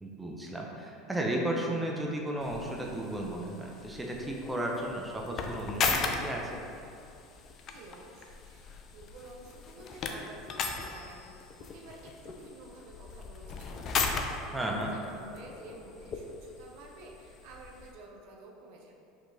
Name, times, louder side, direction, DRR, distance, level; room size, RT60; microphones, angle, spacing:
voice 1, 0.0-6.6 14.5-14.9, right 1 dB, 10° right, -1 dB, 0.5 m, -34 dB
sound 1, 2.4-17.9, left 5 dB, 45° left, 0.4 m, -38 dB
voice 2, 7.7-11.2 11.6-14.6 14.8-18.9, right 2 dB, 65° right, 0 dB, 0.5 m, -51 dB
4.4 x 2.8 x 2.7 m, 2.6 s
hypercardioid pair, 85°, 0 cm